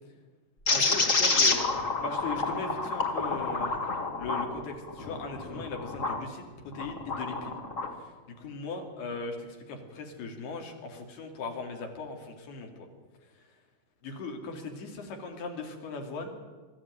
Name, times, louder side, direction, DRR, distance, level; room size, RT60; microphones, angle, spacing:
voice 1, 0.7-1.7 2.0-3.7 4.2-6.5 6.7-7.6 8.4-12.7 14.0-16.4, left 3 dB, 70° left, 3 dB, 4.4 m, -38 dB
sound 1, 0.7-6.2 6.7-7.9, left 3 dB, 45° left, 1.0 m, -28 dB
22.0 x 13.5 x 9.2 m, 1.4 s
omnidirectional pair, 4.8 m